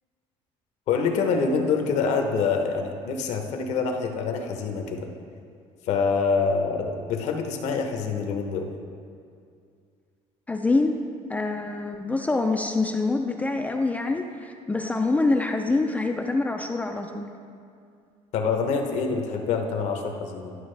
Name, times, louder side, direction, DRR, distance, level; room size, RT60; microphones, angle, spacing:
voice 1, 0.9-5.1 5.9-8.7 18.3-20.6, left 5 dB, 65° left, 4 dB, 0.9 m, -26 dB
voice 2, 10.5-11.0 11.3-17.3, left 3 dB, 10° left, 3 dB, 0.3 m, -25 dB
11.0 x 6.1 x 3.3 m, 2.3 s
cardioid pair, 140°, 12 cm